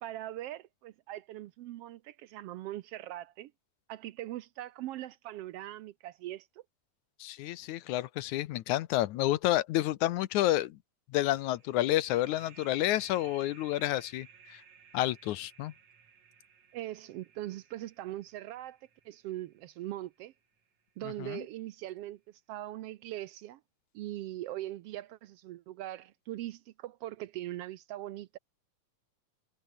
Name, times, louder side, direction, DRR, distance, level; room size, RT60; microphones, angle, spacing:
voice 1, 0.0-3.5 3.9-6.5 16.7-18.8 19.0-20.3 21.0-23.6 23.9-28.4, right 14 dB, 80° right, 1.4 m, -41 dB
voice 2, 7.2-10.8 11.1-14.3 14.9-15.7 21.2-21.4, left 15 dB, 80° left, 2.2 m, -29 dB
sound 1, 11.3-20.6, right 7 dB, 60° right, 4.1 m, -58 dB
omnidirectional pair, 3.5 m